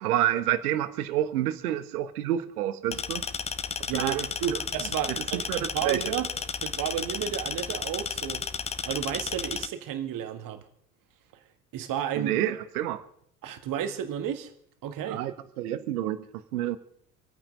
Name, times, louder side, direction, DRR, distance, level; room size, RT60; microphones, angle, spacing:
voice 1, 0.0-3.3 3.9-4.6 5.1-6.0 12.2-13.0 15.1-16.8, right 12 dB, 65° right, 1.2 m, -29 dB
sound 1, 2.9-9.7, left 6 dB, 15° left, 0.5 m, -33 dB
voice 2, 3.6-6.3 6.6-8.4 8.9-10.6 11.7-12.3 13.4-14.5 14.8-15.2, right 10 dB, 40° right, 1.8 m, -32 dB
26.0 x 8.8 x 5.3 m
figure-of-eight pair, 70°, 48 cm